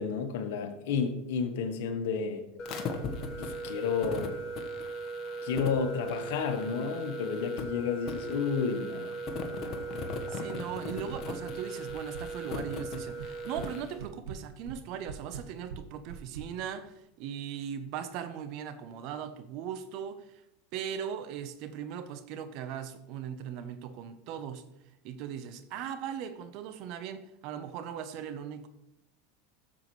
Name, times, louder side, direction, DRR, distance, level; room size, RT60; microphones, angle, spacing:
voice 1, 0.0-2.4 3.4-4.3 5.4-9.2, left 6 dB, 75° left, 1.3 m, -31 dB
sound 1, 2.6-13.9, equal, 45° left, 1.4 m, -37 dB
voice 2, 10.3-20.4 20.7-24.6 25.0-28.7, right 8 dB, 60° right, 1.0 m, -39 dB
sound 2, 11.1-11.6 11.9-12.6 12.9-13.7 14.0-16.5, right 7 dB, 85° right, 1.0 m, -43 dB
12.0 x 7.4 x 3.3 m
hypercardioid pair, 105°, 0 cm